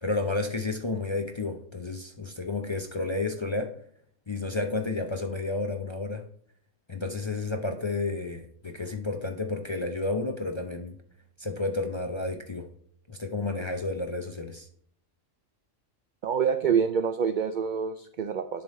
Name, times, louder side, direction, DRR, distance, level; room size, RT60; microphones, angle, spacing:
voice 1, 0.0-3.7 4.3-6.3 6.9-11.0 11.4-12.7 13.1-14.7, left 3 dB, 35° left, 4 dB, 0.5 m, -31 dB
voice 2, 16.2-18.6, right 7 dB, 75° right, 9 dB, 0.4 m, -26 dB
10.5 x 3.5 x 4.1 m, 0.63 s
omnidirectional pair, 1.3 m